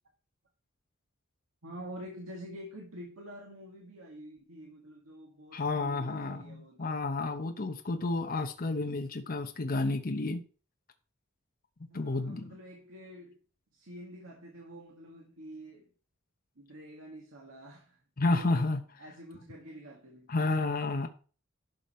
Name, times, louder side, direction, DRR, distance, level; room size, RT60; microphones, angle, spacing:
voice 1, 1.6-6.9 11.9-13.4 13.7-15.9 16.6-18.7 19.0-20.3, equal, 90° right, 1.9 m, -47 dB
voice 2, 5.5-10.4 11.9-12.5 18.2-18.8 20.3-21.1, left 2 dB, 45° left, 0.9 m, -31 dB
12.0 x 5.2 x 4.3 m
head